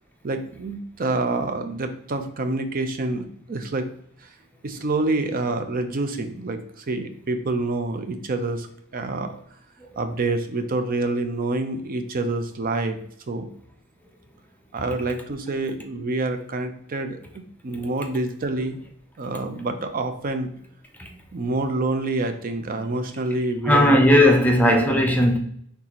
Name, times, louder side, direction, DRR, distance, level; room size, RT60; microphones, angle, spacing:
voice 1, 0.2-3.9 4.2-4.3 4.6-8.7 8.9-9.3 10.0-13.0 13.3-13.5 14.7-17.2 17.6-18.8 19.2-20.5 21.3-24.0 24.7-24.8, right 2 dB, 40° right, 0.5 m, -27 dB
voice 2, 23.6-25.4, left 1 dB, 10° left, 0.5 m, -17 dB
4.0 x 3.5 x 2.9 m
head